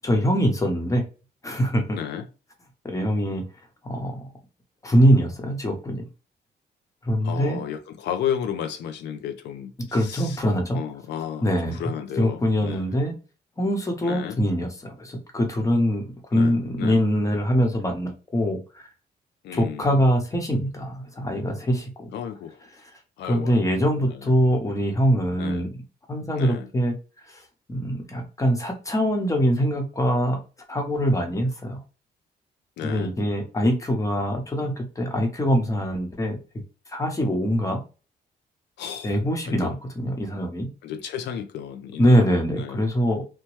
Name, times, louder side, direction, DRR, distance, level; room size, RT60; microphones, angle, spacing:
voice 1, 0.0-1.0 1.4-2.0 2.8-3.4 3.8-4.2 4.8-6.1 7.0-7.6 9.9-10.8 11.4-11.8 12.2-13.1 13.6-18.6 19.5-22.1 23.3-25.8 26.1-26.9 27.7-30.4 30.7-31.8 32.8-36.4 36.9-37.8 39.0-40.7 42.0-43.2, equal, 20° left, 0.9 m, -23 dB
voice 2, 1.9-2.3 7.2-10.4 10.7-13.0 14.0-14.4 16.3-17.0 19.4-20.0 22.1-22.6 23.2-23.6 24.1-24.3 25.4-25.7 26.4-26.7 32.8-33.1 38.8-39.1 39.5-39.8 40.8-42.3 42.6-42.8, left 9 dB, 80° left, 0.4 m, -33 dB
2.9 x 2.1 x 3.1 m
cardioid pair, 105°, 17 cm